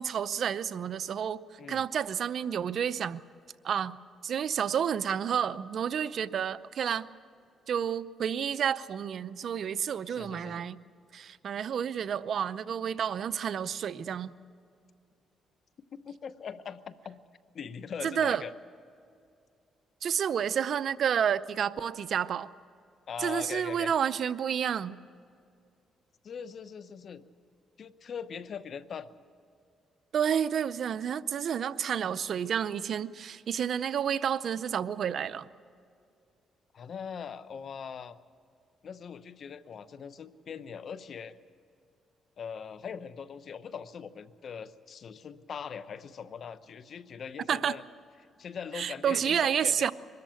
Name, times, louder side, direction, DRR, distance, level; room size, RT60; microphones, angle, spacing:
voice 1, 0.0-3.2 3.6-4.0 4.2-7.1 7.7-10.8 11.1-14.3 18.0-18.4 20.0-22.5 23.2-25.0 30.1-35.5 47.5-47.7 48.7-49.9, right 8 dB, 60° right, 15 dB, 0.6 m, -30 dB
voice 2, 10.1-10.7 15.9-17.2 17.5-18.5 23.1-23.9 26.2-27.2 27.8-29.1 36.7-38.2 38.8-41.4 42.4-47.8 48.4-49.9, left 7 dB, 55° left, 13 dB, 0.9 m, -41 dB
23.0 x 13.5 x 9.0 m, 2.4 s
cardioid pair, 90°, 0 cm